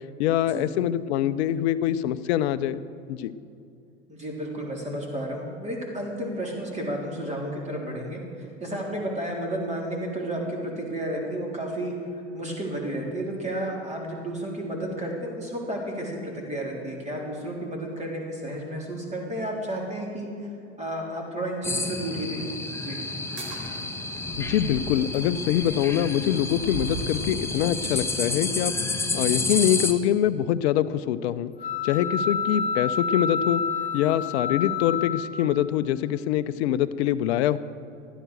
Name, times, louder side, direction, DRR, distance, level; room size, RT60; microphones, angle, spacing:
voice 1, 0.2-2.8 3.1-3.3 24.4-28.7 29.1-31.5 31.8-33.6 33.9-37.6, left 11 dB, 60° left, 12 dB, 0.6 m, -24 dB
voice 2, 4.1-8.2 8.6-11.9 12.3-20.3 20.8-22.5 22.8-23.0, right 1 dB, 20° right, -1 dB, 3.9 m, -32 dB
sound 1, 21.6-29.9, left 3 dB, 5° left, 1.2 m, -30 dB
sound 2, 23.2-27.4, right 3 dB, 55° right, 4.1 m, -39 dB
sound 3, 31.6-35.7, left 5 dB, 25° left, 2.1 m, -29 dB
14.5 x 11.5 x 6.6 m, 2.5 s
hypercardioid pair, 85°, 36 cm